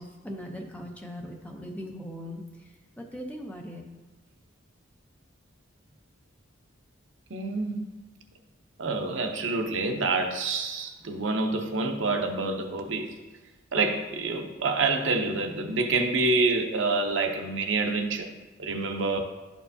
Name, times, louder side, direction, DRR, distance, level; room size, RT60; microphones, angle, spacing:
voice 1, 0.0-3.8, equal, 5° left, 1 dB, 0.6 m, -40 dB
voice 2, 7.3-7.9 8.8-13.2 13.7-18.3 18.6-19.2, right 3 dB, 65° right, 5 dB, 0.7 m, -27 dB
11.0 x 4.5 x 2.7 m, 1.2 s
head